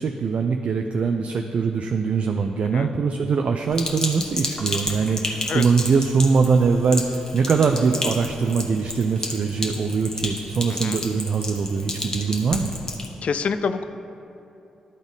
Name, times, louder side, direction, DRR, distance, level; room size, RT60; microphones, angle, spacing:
voice 1, 0.0-12.7, right 5 dB, 55° right, 4 dB, 0.4 m, -22 dB
Sink (filling or washing), 3.7-13.1, left 1 dB, 25° left, 1.1 m, -31 dB
voice 2, 10.7-11.0 13.2-13.8, left 5 dB, 60° left, 11 dB, 0.3 m, -26 dB
11.5 x 4.0 x 3.6 m, 2.8 s
hypercardioid pair, 40°, 3 cm